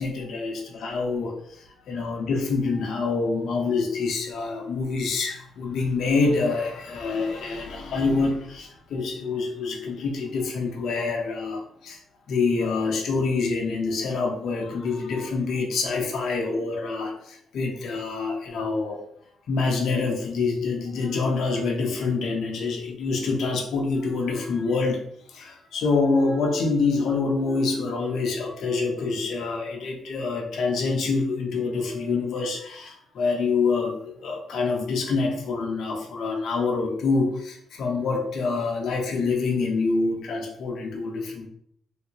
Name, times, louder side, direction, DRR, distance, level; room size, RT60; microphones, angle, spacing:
voice 1, 0.0-12.0 12.3-19.0 19.5-25.0 25.3-41.5, left 4 dB, 70° left, 0 dB, 0.7 m, -26 dB
3.2 x 2.6 x 2.9 m, 0.69 s
cardioid pair, 90°, 0 cm